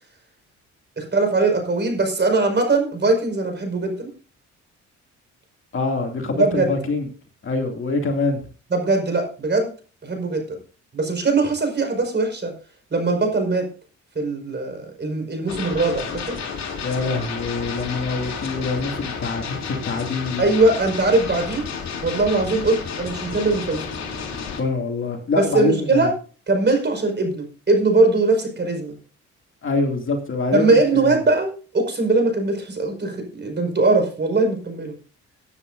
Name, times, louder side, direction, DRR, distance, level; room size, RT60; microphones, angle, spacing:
voice 1, 1.0-4.1 6.3-6.7 8.7-9.7 10.0-10.6 10.9-12.5 12.9-13.7 14.2-16.4 20.4-21.7 22.0-23.9 25.4-26.1 26.5-29.0 30.5-35.0, right 3 dB, 35° right, 4 dB, 5.3 m, -21 dB
voice 2, 5.7-7.1 7.4-8.4 16.8-20.4 24.6-26.1 29.6-31.1, left 3 dB, 40° left, 3 dB, 2.6 m, -25 dB
sound 1, 15.5-24.6, left 6 dB, 60° left, 3.2 m, -31 dB
19.0 x 9.9 x 2.7 m, 0.38 s
cardioid pair, 90°, 30 cm